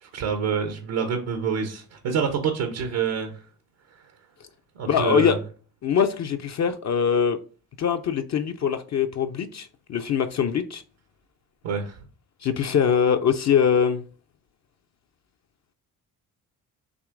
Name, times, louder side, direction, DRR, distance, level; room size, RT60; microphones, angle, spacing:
voice 1, 0.0-3.4 4.8-5.4 11.6-12.0, right 6 dB, 70° right, 0.8 m, -27 dB
voice 2, 4.9-5.4 5.8-7.4 7.8-10.8 12.4-14.0, left 7 dB, 40° left, 0.4 m, -23 dB
6.1 x 3.0 x 2.5 m
hypercardioid pair, 50°, 45 cm